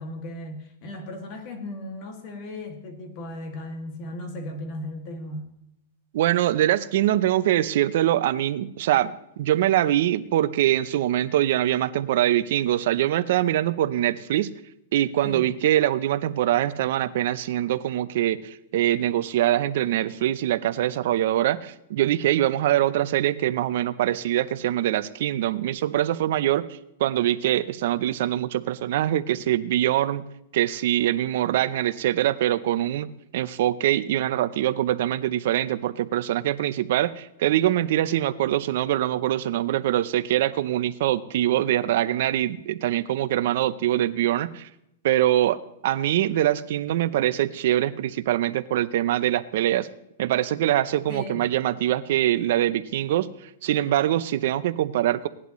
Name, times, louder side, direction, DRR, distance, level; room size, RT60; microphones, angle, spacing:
voice 1, 0.0-5.5 15.2-15.5 51.1-51.5, left 1 dB, 40° left, 5 dB, 2.1 m, -36 dB
voice 2, 6.1-14.5 14.9-26.7 27.0-30.2 30.5-44.7 45.0-49.9 50.2-53.3 53.6-55.3, right 13 dB, 60° right, 14 dB, 0.6 m, -23 dB
17.5 x 11.0 x 3.1 m, 0.80 s
supercardioid pair, 155°, 0 cm